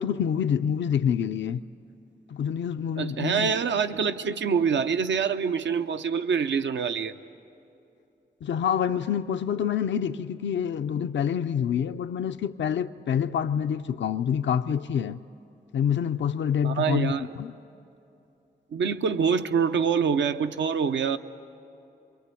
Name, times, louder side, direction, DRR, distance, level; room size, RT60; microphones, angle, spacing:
voice 1, 0.0-1.6 2.3-3.5 8.4-15.2 15.7-17.5, left 8 dB, 90° left, 0.5 m, -27 dB
voice 2, 3.0-7.2 16.6-17.3 18.7-21.2, right 6 dB, 90° right, 0.7 m, -25 dB
28.0 x 23.5 x 8.3 m
cardioid pair, 60°, 18 cm